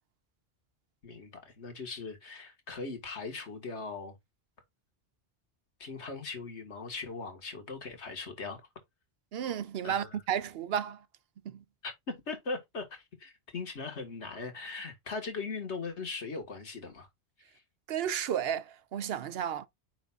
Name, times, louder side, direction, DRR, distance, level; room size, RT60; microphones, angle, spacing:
voice 1, 1.0-4.2 5.8-8.6 9.8-10.1 11.8-17.1, left 4 dB, 80° left, 2.0 m, -39 dB
voice 2, 9.3-11.0 11.4-11.6 17.9-19.7, right 9 dB, 65° right, 0.8 m, -33 dB
9.1 x 4.8 x 2.4 m
omnidirectional pair, 1.2 m